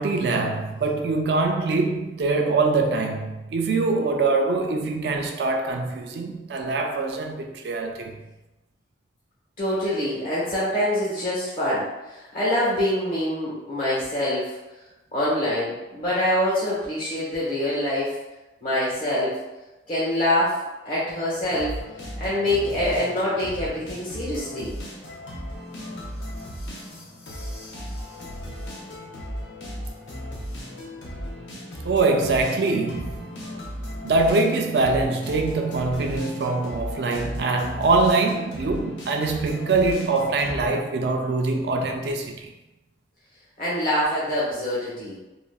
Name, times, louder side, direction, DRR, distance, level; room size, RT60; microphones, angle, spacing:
voice 1, 0.0-8.2 31.8-33.4 34.0-42.5, right 3 dB, 65° right, 0.4 m, -23 dB
voice 2, 9.6-14.5 15.1-18.1 18.6-19.3 19.9-20.5 20.8-21.8 22.2-24.8 43.6-45.2, left 1 dB, 55° left, 0.9 m, -25 dB
sound 1, 21.4-40.8, equal, 85° left, 0.6 m, -36 dB
3.7 x 2.0 x 2.2 m
head